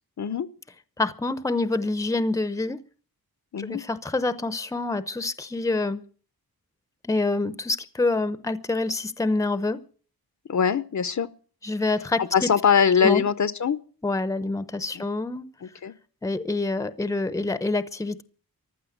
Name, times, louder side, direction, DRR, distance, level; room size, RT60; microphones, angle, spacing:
voice 1, 0.2-0.5 3.5-3.8 10.5-11.3 12.2-13.8 14.9-15.1 15.6-15.9, left 7 dB, 50° left, 0.7 m, -22 dB
voice 2, 1.0-2.8 3.6-6.0 7.0-9.8 11.6-12.2 13.0-13.2 14.0-15.5 16.2-18.2, left 2 dB, 10° left, 0.7 m, -26 dB
15.0 x 12.0 x 7.9 m
wide cardioid pair, 175°, 37 cm